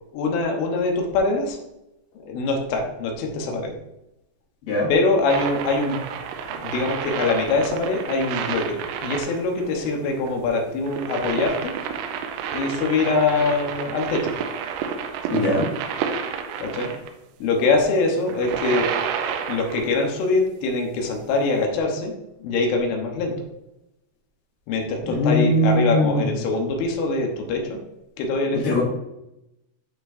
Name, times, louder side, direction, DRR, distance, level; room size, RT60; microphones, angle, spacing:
voice 1, 0.1-1.6 2.3-3.7 4.9-6.0 6.6-11.7 12.5-14.3 16.6-16.9 17.4-18.9 19.5-22.1 22.4-23.3 24.7-27.8 28.2-28.8, left 3 dB, 75° left, 1 dB, 3.4 m, -23 dB
sound 1, 5.3-17.1 18.2-20.0 21.6-21.7, right 7 dB, 85° right, 3.3 m, -30 dB
voice 2, 15.3-15.7 25.1-26.2 28.6-28.8, left 1 dB, 55° left, -6 dB, 2.8 m, -20 dB
12.0 x 4.4 x 2.6 m, 0.88 s
omnidirectional pair, 5.8 m